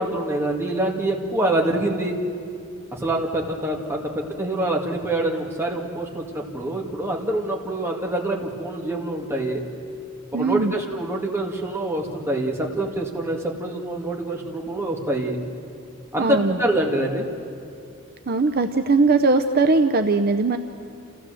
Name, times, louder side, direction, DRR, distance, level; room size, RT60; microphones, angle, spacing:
voice 1, 0.0-2.2 2.9-9.6 10.3-15.4 16.1-17.3, right 1 dB, 15° right, -1 dB, 2.2 m, -25 dB
voice 2, 10.3-10.7 16.2-16.6 18.3-20.6, right 3 dB, 50° right, 7 dB, 0.7 m, -20 dB
29.0 x 15.5 x 7.7 m, 2.5 s
head